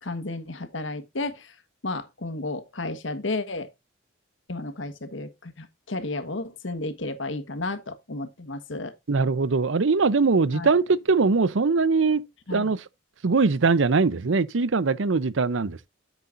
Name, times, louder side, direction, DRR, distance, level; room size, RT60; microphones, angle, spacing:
voice 1, 0.0-1.6 1.8-3.7 4.5-8.9 10.5-10.7 12.5-12.7, left 2 dB, 80° left, 1.4 m, -32 dB
voice 2, 9.1-12.8 13.2-15.9, right 4 dB, 80° right, 0.7 m, -22 dB
9.8 x 8.2 x 2.6 m
head